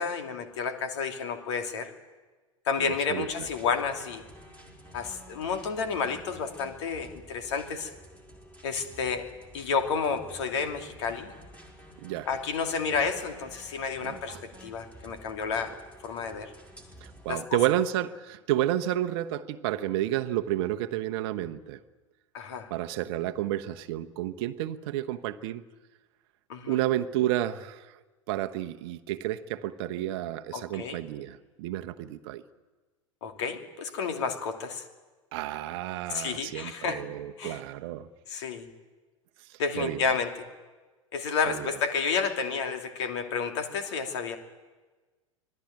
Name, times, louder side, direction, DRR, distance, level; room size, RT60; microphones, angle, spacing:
voice 1, 0.0-1.9 2.6-4.2 4.9-7.9 8.6-9.3 9.5-11.3 12.3-15.7 16.0-16.5 17.3-17.6 22.3-22.7 26.5-26.8 30.5-31.0 33.2-34.9 36.1-37.0 37.4-37.6 38.3-38.7 39.6-40.4 41.1-44.4, left 5 dB, 55° left, 7 dB, 2.7 m, -31 dB
voice 2, 2.8-3.3 12.0-12.3 14.0-14.4 17.2-21.8 22.7-25.6 26.7-27.9 28.3-32.4 35.3-38.1 39.5-40.0 41.5-41.7, right 13 dB, 50° right, 8 dB, 1.0 m, -31 dB
sound 1, 3.3-17.3, right 1 dB, 10° left, 4.5 m, -51 dB
25.0 x 17.5 x 9.2 m, 1.3 s
figure-of-eight pair, 90°, 17 cm